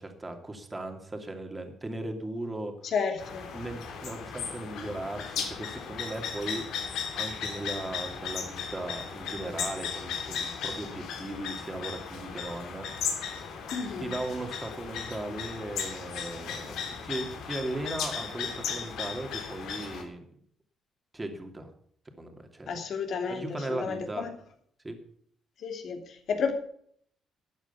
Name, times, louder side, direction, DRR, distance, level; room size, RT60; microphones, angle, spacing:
voice 1, 0.0-2.9 3.5-6.6 7.1-13.3 14.0-20.2 21.1-21.7 22.2-22.8 23.3-24.3 24.8-25.0, right 2 dB, 20° right, 2.7 m, -37 dB
voice 2, 2.9-3.5 13.7-14.1 22.7-24.3 25.6-26.5, left 5 dB, 65° left, 2.9 m, -32 dB
sound 1, 3.2-20.0, left 6 dB, 85° left, 3.0 m, -36 dB
13.0 x 8.6 x 7.0 m
cardioid pair, 90°, 0 cm